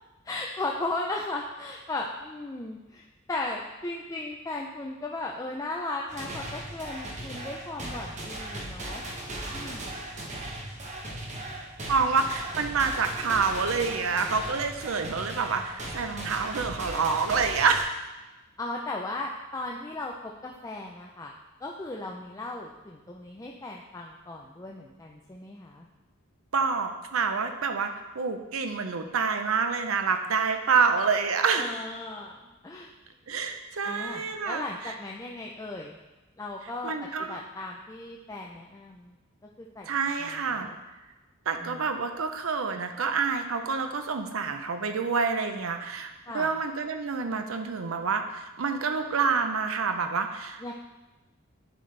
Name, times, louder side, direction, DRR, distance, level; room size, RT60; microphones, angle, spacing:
voice 1, 0.2-9.1 9.5-10.0 18.6-21.3 21.6-25.9 31.6-32.9 33.8-36.0 36.4-36.9 37.2-39.2 39.6-39.9 40.2-40.8 41.6-41.8 46.3-46.5 50.6-50.7, left 2 dB, 15° left, -1 dB, 0.4 m, -36 dB
sound 1, 6.1-17.8, right 1 dB, 35° right, 1.0 m, -37 dB
voice 2, 11.9-18.0 26.5-31.7 33.3-34.9 36.8-37.4 39.8-40.7 41.5-50.7, right 5 dB, 80° right, 7 dB, 0.6 m, -27 dB
10.0 x 4.0 x 3.3 m, 1.1 s
head